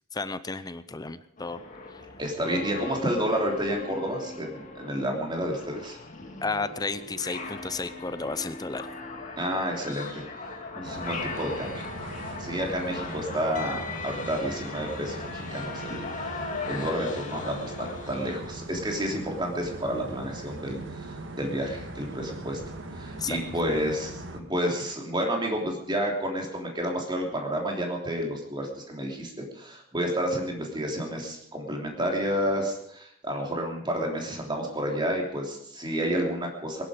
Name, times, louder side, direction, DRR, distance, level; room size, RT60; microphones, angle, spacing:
voice 1, 0.1-1.6 1.9-2.0 6.4-8.9 23.2-23.4, left 4 dB, 20° left, 13 dB, 0.6 m, -32 dB
sound 1, 1.4-18.4, left 3 dB, 40° left, 2.2 m, -39 dB
voice 2, 2.2-6.0 9.4-10.2 10.7-11.9 12.4-16.4 16.6-22.6 22.9-36.8, equal, 20° right, 1 dB, 3.3 m, -30 dB
sound 2, 10.8-24.4, right 2 dB, 65° right, 1.6 m, -40 dB
21.0 x 11.5 x 5.1 m, 0.71 s
head